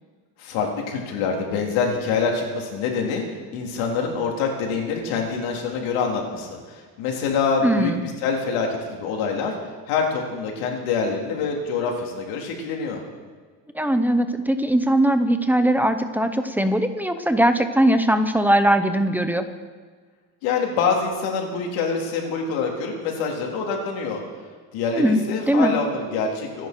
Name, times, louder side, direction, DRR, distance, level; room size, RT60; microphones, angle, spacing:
voice 1, 0.4-3.2 3.5-7.9 8.2-9.6 9.9-13.0 20.4-24.2 24.7-26.7, left 5 dB, 75° left, 0 dB, 3.9 m, -25 dB
voice 2, 7.6-8.1 13.7-19.5 24.9-25.2 25.5-25.7, right 1 dB, 5° right, 8 dB, 0.7 m, -20 dB
25.5 x 10.5 x 4.6 m, 1.5 s
cardioid pair, 150°, 48 cm